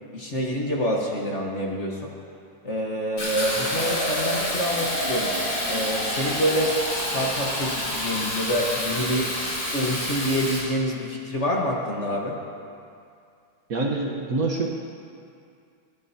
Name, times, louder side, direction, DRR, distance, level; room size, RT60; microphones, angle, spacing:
voice 1, 0.1-2.1 2.6-5.3 5.7-9.3 9.7-12.4, equal, 40° left, -2 dB, 1.4 m, -27 dB
Fill (with liquid), 3.2-10.6, equal, 85° left, 4.6 m, -28 dB
voice 2, 13.7-14.7, right 3 dB, 50° right, 0 dB, 1.3 m, -25 dB
26.0 x 11.0 x 2.8 m, 2.4 s
omnidirectional pair, 2.2 m